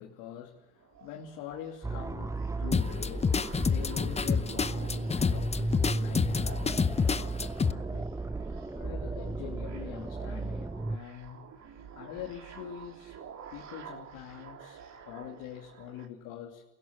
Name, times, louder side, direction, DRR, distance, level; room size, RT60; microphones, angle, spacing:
voice 1, 0.0-11.5 11.9-13.2 13.5-16.6, left 10 dB, 80° left, 0 dB, 2.8 m, -44 dB
sound 1, 0.8-16.1, right 7 dB, 55° right, 3.7 m, -50 dB
sound 2, 1.8-11.0, right 2 dB, 10° right, 0.8 m, -35 dB
sound 3, 2.7-7.7, left 5 dB, 20° left, 0.8 m, -28 dB
28.0 x 16.5 x 7.8 m, 1.1 s
supercardioid pair, 90°, 33 cm